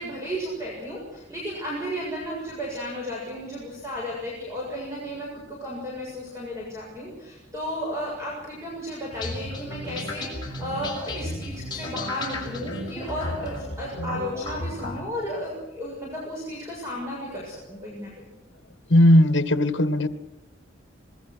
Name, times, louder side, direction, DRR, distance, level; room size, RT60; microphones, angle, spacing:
voice 1, 0.0-18.3, equal, 15° right, -4 dB, 7.3 m, -34 dB
sound 1, 9.1-15.0, left 1 dB, 20° left, 6.1 m, -34 dB
voice 2, 18.9-20.1, left 1 dB, 60° left, 12 dB, 1.6 m, -17 dB
25.0 x 21.5 x 6.3 m, 1.0 s
head